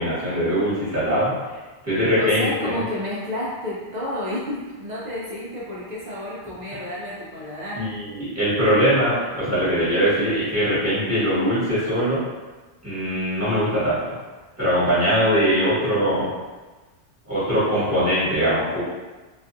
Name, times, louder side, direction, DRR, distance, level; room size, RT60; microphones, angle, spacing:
voice 1, 0.0-1.3 1.8-2.8 7.8-12.2 12.8-14.0 14.6-16.3 17.2-18.8, equal, 15° right, -13 dB, 1.2 m, -21 dB
voice 2, 2.2-7.8, left 1 dB, 55° right, -7 dB, 0.5 m, -30 dB
2.4 x 2.3 x 2.5 m, 1.3 s
omnidirectional pair, 1.2 m